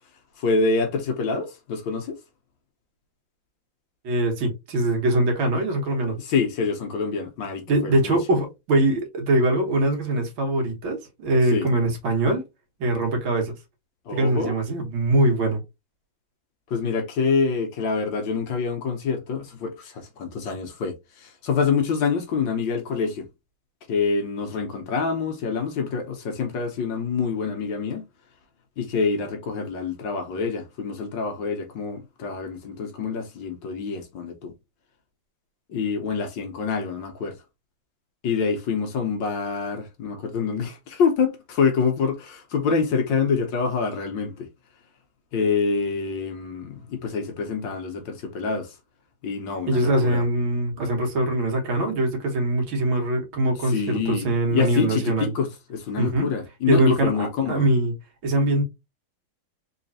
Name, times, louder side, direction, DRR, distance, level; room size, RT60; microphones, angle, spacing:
voice 1, 0.4-2.2 6.2-8.2 11.5-11.7 14.1-14.6 16.7-23.3 23.9-28.0 28.8-34.5 35.7-37.4 38.2-44.5 45.3-48.8 49.2-50.2 53.7-57.7, left 5 dB, 65° left, 1.4 m, -26 dB
voice 2, 4.0-6.2 7.7-12.4 12.8-13.5 14.1-15.6 49.7-55.3 56.0-56.3 56.7-57.9 58.2-58.6, right 1 dB, 70° right, 2.0 m, -22 dB
4.0 x 3.1 x 2.7 m
omnidirectional pair, 2.4 m